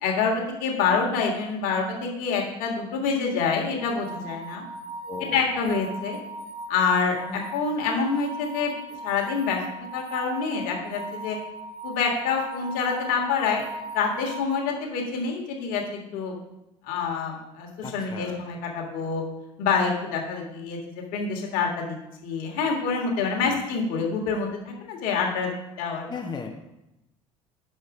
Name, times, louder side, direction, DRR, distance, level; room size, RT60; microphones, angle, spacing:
voice 1, 0.0-4.6 5.3-6.2 6.7-8.7 9.0-9.6 9.9-11.4 11.8-13.6 13.9-16.4 16.8-19.2 19.6-22.0 22.2-25.5 25.8-26.1, left 5 dB, 60° left, 1 dB, 1.7 m, -26 dB
sound 1, 3.7-14.6, right 2 dB, 65° right, 1.2 m, -39 dB
voice 2, 5.1-5.4 7.3-7.4 17.8-18.4 23.4-23.7 26.1-26.5, left 5 dB, 25° left, 1 dB, 0.8 m, -36 dB
6.5 x 5.2 x 4.9 m, 0.91 s
figure-of-eight pair, 60°, 16 cm